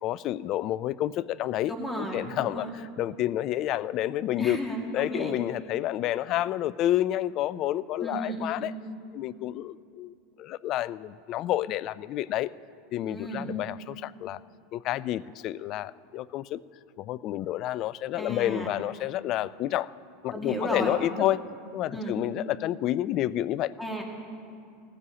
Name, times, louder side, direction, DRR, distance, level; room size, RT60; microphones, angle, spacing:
voice 1, 0.0-4.6 4.9-8.7 9.1-12.5 12.9-14.4 14.7-16.6 17.0-19.9 20.2-21.4 21.7-23.7, left 13 dB, 50° left, 18 dB, 0.3 m, -29 dB
voice 2, 1.7-2.7 4.4-5.4 8.0-8.6 13.0-13.6 18.2-18.8 20.3-21.1 21.9-22.2 23.8-24.0, right 1 dB, 5° left, 0 dB, 2.0 m, -34 dB
19.5 x 15.0 x 2.9 m, 2.4 s
supercardioid pair, 110°, 0 cm